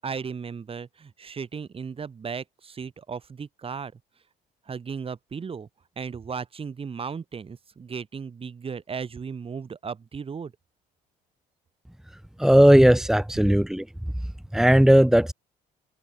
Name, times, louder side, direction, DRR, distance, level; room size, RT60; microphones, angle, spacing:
voice 1, 0.0-3.9 4.7-5.7 6.0-10.5, right 6 dB, 35° right, 6.7 m, -35 dB
voice 2, 12.4-13.8 14.5-15.3, equal, 5° right, 2.1 m, -17 dB
cardioid pair, 110°, 17 cm